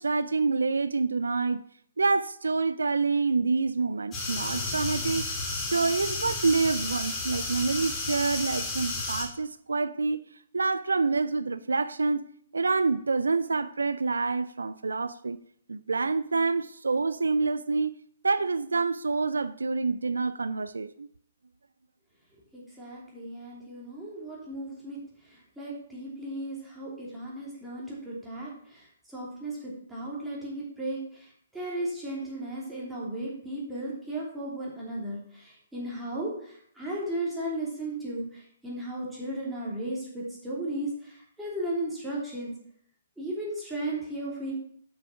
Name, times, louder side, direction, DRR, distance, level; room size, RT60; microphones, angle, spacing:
voice 1, 0.0-1.6 2.0-5.3 5.6-10.2 10.5-15.4 15.7-17.9 18.2-21.1, right 4 dB, 70° right, 0.3 m, -27 dB
sound 1, 4.1-9.2, left 3 dB, 20° left, 2.2 m, -32 dB
voice 2, 22.5-25.0 25.3-31.3 31.5-42.5 43.2-44.5, right 1 dB, 5° right, 3.0 m, -35 dB
8.5 x 6.0 x 5.7 m
figure-of-eight pair, 125°, 0 cm